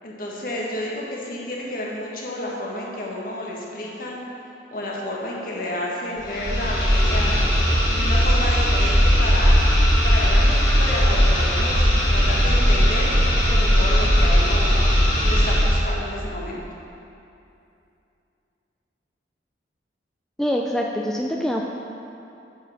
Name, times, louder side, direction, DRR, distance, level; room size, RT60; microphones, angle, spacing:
voice 1, 0.0-4.3 4.7-7.4 8.0-9.6 10.0-14.8 15.2-16.6, left 1 dB, 50° left, -3 dB, 1.6 m, -30 dB
sound 1, 6.2-15.9, equal, 25° left, 1.9 m, -18 dB
voice 2, 20.4-21.6, equal, 5° left, -1 dB, 0.4 m, -24 dB
8.7 x 5.4 x 6.5 m, 2.7 s
head